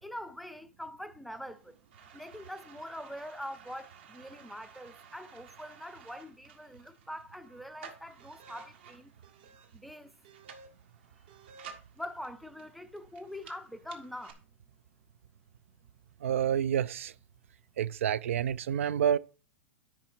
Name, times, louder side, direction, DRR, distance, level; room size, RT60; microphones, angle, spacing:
voice 1, 0.0-1.8 2.1-9.1 9.7-10.1 12.0-14.4, left 1 dB, ahead, 0.4 m, -44 dB
sound 1, 1.3-14.3, right 6 dB, 55° right, 1.5 m, -54 dB
voice 2, 16.2-17.1 17.8-19.2, right 9 dB, 80° right, 0.4 m, -28 dB
9.8 x 4.6 x 4.5 m
hypercardioid pair, 150°, 7 cm